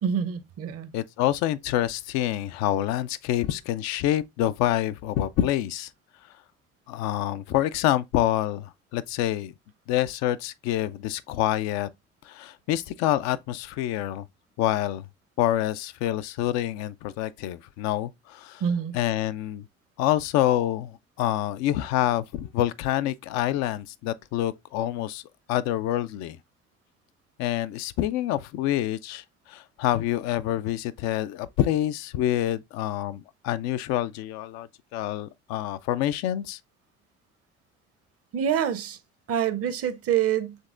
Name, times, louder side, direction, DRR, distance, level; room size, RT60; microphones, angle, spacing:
voice 1, 0.0-0.9 18.6-18.9 38.3-39.0 39.3-40.6, right 8 dB, 50° right, 0.7 m, -26 dB
voice 2, 0.9-5.9 6.9-9.5 9.9-11.9 12.2-14.2 14.6-15.1 15.4-18.6 18.9-19.7 20.0-25.2 25.5-26.4 27.4-36.6, left 13 dB, 65° left, 0.4 m, -27 dB
5.2 x 3.5 x 2.4 m
hypercardioid pair, 55°, 30 cm